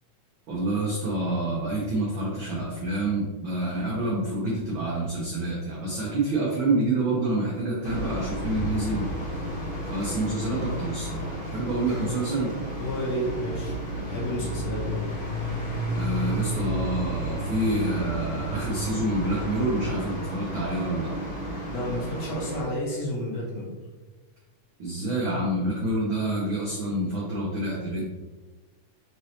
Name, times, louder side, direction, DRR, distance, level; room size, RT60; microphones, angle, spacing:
voice 1, 0.5-9.1 9.9-12.5 15.9-21.1 24.8-28.0, right 1 dB, 85° right, -5 dB, 1.1 m, -27 dB
sound 1, 7.8-22.6, right 1 dB, 85° left, 0.4 m, -32 dB
voice 2, 12.8-15.0 21.7-23.7, equal, 65° left, -4 dB, 2.1 m, -31 dB
5.3 x 3.2 x 2.8 m, 1.2 s
omnidirectional pair, 3.4 m